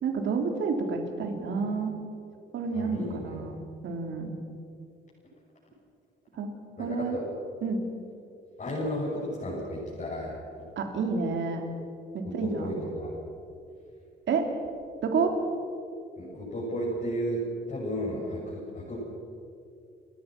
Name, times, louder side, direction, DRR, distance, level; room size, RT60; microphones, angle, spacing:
voice 1, 0.0-1.9 2.5-4.3 6.4-6.5 6.8-7.2 7.6-7.8 10.8-11.6 12.1-12.7 14.3-14.5 15.0-15.3, right 4 dB, 70° right, 4 dB, 3.4 m, -29 dB
voice 2, 2.7-3.4 6.8-7.2 8.6-10.3 12.4-13.1 16.2-17.4 17.7-19.0, equal, 40° left, -6 dB, 7.0 m, -33 dB
29.5 x 14.5 x 6.1 m, 2.5 s
cardioid pair, 90°, 20 cm